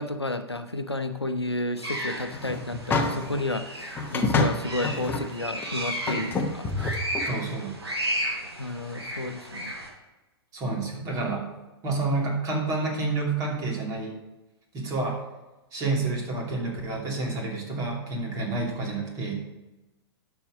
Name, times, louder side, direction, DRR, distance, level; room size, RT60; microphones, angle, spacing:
voice 1, 0.0-6.7 8.6-9.8, left 2 dB, 85° left, 9 dB, 0.8 m, -31 dB
sound 1, 1.8-9.9, equal, 80° right, 2.7 m, -34 dB
sound 2, 2.3-3.4 4.0-5.3 5.6-5.7 6.1-7.3, left 3 dB, 15° left, 1.0 m, -27 dB
voice 2, 7.3-7.8 10.5-11.5 11.8-14.1 14.7-15.2 15.7-19.3, right 3 dB, 25° right, -1 dB, 2.8 m, -29 dB
11.5 x 6.1 x 5.1 m, 1.1 s
figure-of-eight pair, 105°, 13 cm